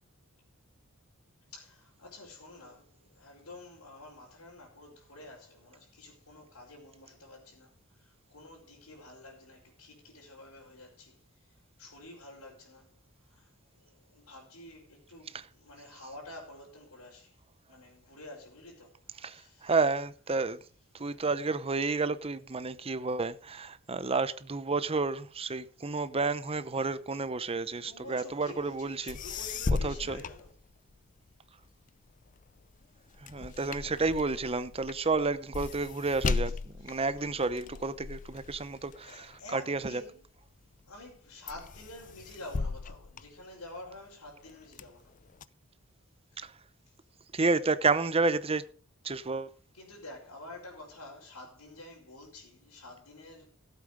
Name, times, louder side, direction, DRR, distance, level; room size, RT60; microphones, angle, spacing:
voice 1, 1.5-7.7 8.0-11.2 11.8-12.9 13.3-13.5 13.8-17.3 17.7-19.7 27.6-30.5 36.8-37.8 39.1-40.2 40.9-45.1 46.3-46.4 49.7-53.5, left 1 dB, 85° left, 4.9 m, -49 dB
voice 2, 19.2-20.6 20.9-29.2 29.8-30.2 33.3-40.0 46.4-46.5 47.3-48.6 49.0-49.5, right 3 dB, 25° right, 0.7 m, -30 dB
sound 1, 28.8-28.9 29.1-31.2 31.6-40.3 40.8-41.2 41.5-44.0 44.4-45.4, left 4 dB, 35° left, 0.5 m, -37 dB
15.5 x 8.3 x 5.1 m
head